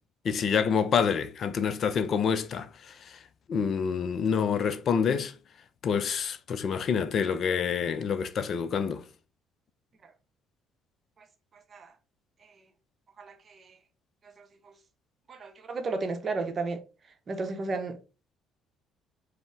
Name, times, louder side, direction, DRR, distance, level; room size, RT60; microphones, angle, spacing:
voice 1, 0.2-2.7 3.5-5.3 5.8-9.0, left 6 dB, 45° left, 0.4 m, -27 dB
voice 2, 11.5-11.9 12.4-12.5 13.2-13.8 14.4-14.7 15.3-16.8 17.3-18.0, right 3 dB, 40° right, 0.7 m, -34 dB
5.2 x 2.0 x 3.5 m
figure-of-eight pair, 50°, 0 cm